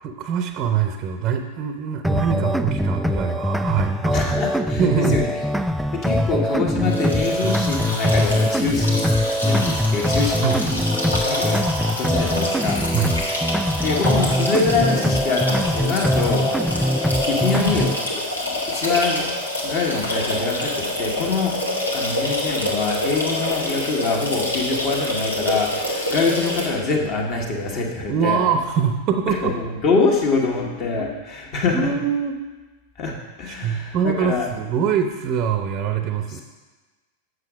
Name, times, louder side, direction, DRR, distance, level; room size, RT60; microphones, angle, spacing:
voice 1, 0.0-4.3 4.8-5.2 10.4-10.6 12.9-13.1 28.1-29.5 30.5-31.1 31.7-32.4 33.5-36.4, right 7 dB, 35° right, 6 dB, 0.6 m, -23 dB
sound 1, 2.0-18.0, equal, ahead, 0.3 m, -22 dB
voice 2, 4.1-5.3 5.9-10.8 11.1-11.6 12.0-12.8 13.8-16.9 17.3-18.0 18.4-19.3 19.6-21.6 21.9-28.4 29.3-31.9 33.0-34.5, left 4 dB, 40° left, 0 dB, 1.6 m, -24 dB
sound 2, 6.8-26.7, left 1 dB, 80° left, 1.5 m, -27 dB
7.5 x 6.4 x 4.9 m, 1.3 s
figure-of-eight pair, 90°, 0 cm